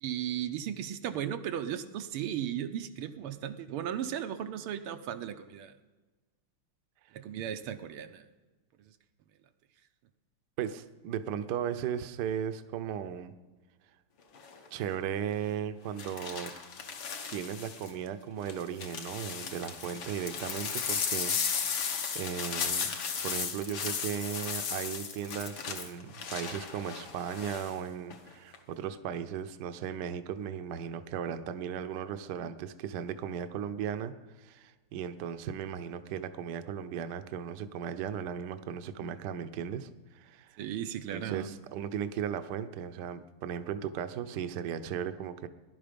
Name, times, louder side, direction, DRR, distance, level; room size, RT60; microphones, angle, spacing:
voice 1, 0.0-5.7 7.1-8.2 40.6-41.5, right 10 dB, 85° right, 8 dB, 1.7 m, -36 dB
voice 2, 10.6-13.3 14.7-16.5 17.3-21.4 22.1-22.9 23.2-34.1 34.4-40.6 41.1-45.5, right 8 dB, 65° right, 10 dB, 1.1 m, -36 dB
sound 1, 14.3-14.7 16.0-17.9 18.5-27.7 28.1-28.6, left 6 dB, 65° left, 1.9 m, -35 dB
18.0 x 11.0 x 5.2 m, 1.3 s
omnidirectional pair, 2.4 m